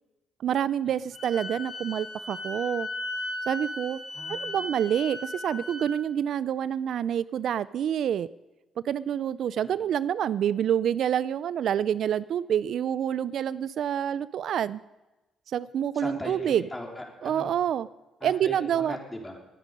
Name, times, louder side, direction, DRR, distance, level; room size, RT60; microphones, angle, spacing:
voice 1, 0.4-2.9 3.5-4.0 4.3-8.3 8.8-14.8 15.5-16.6 17.2-17.9 18.2-19.0, right 9 dB, 65° right, 18 dB, 0.4 m, -27 dB
Wind instrument woodwind instrument, 1.1-5.9, left 2 dB, 40° left, 3.7 m, -36 dB
voice 2, 4.1-4.5 9.6-9.8 15.9-17.5 18.2-19.4, left 1 dB, 15° left, 1 dB, 3.5 m, -39 dB
20.5 x 9.2 x 5.2 m, 1.1 s
cardioid pair, 90°, 0 cm